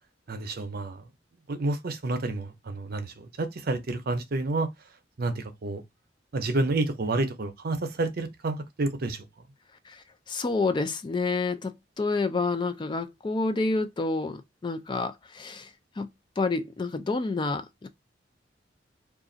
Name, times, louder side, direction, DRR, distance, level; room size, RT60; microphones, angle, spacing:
voice 1, 0.3-1.0 1.5-4.7 5.2-5.8 6.3-9.2, right 2 dB, 55° right, 0.6 m, -29 dB
voice 2, 9.9-15.7 16.0-16.1 16.4-17.9, left 3 dB, 25° left, 0.3 m, -29 dB
2.5 x 2.4 x 3.7 m
head